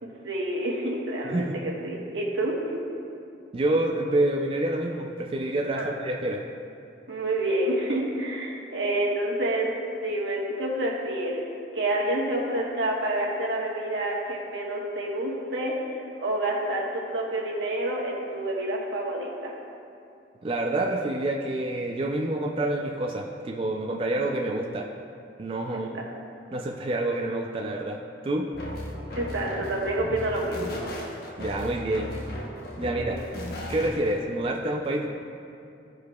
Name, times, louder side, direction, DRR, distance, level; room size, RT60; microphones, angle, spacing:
voice 1, 0.0-2.8 5.7-5.9 7.1-9.7 10.0-11.4 11.7-19.5 25.9-26.0 29.2-30.9 33.0-33.2, right 1 dB, 85° right, -3 dB, 1.3 m, -28 dB
voice 2, 3.5-6.4 20.4-24.9 25.4-26.0 26.5-28.0 28.2-28.5 31.4-32.1 32.8-33.2 33.7-35.1, right 1 dB, 30° right, 0 dB, 0.4 m, -27 dB
sound 1, 28.5-34.2, left 1 dB, 55° left, 0.9 m, -36 dB
14.0 x 4.8 x 2.3 m, 2.5 s
head